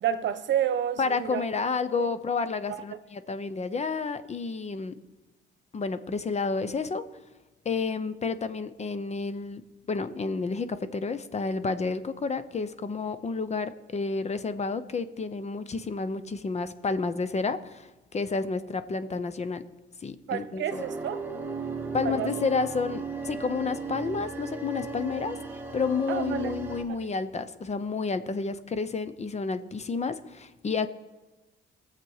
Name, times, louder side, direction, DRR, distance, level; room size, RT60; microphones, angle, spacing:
voice 1, 0.0-1.4 2.0-2.1 2.7-2.8 20.3-21.2 22.0-22.3 26.1-26.5 26.9-27.1, right 9 dB, 70° right, 1.0 m, -30 dB
voice 2, 1.0-4.9 5.7-7.0 7.6-9.6 9.9-19.6 20.0-20.8 21.9-25.4 25.7-30.9, left 4 dB, 35° left, 0.8 m, -30 dB
sound 1, 20.7-26.8, right 4 dB, 10° right, 2.0 m, -36 dB
20.5 x 7.6 x 4.8 m
cardioid pair, 90°, 20 cm